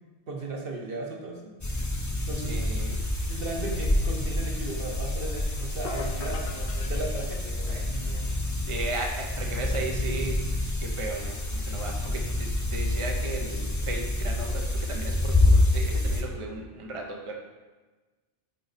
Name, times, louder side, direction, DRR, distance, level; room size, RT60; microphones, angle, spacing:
voice 1, 0.3-1.5 2.3-2.6 3.3-8.3, right 2 dB, 55° right, -1 dB, 1.3 m, -36 dB
sound 1, 1.6-16.2, left 2 dB, 20° left, 0.5 m, -27 dB
voice 2, 2.4-3.0 7.7-7.9 8.7-10.4 10.8-17.3, right 3 dB, 35° right, 1 dB, 0.6 m, -36 dB
sound 2, 5.8-7.9, left 6 dB, 60° left, 0.7 m, -42 dB
8.2 x 4.1 x 4.1 m, 1.2 s
omnidirectional pair, 1.2 m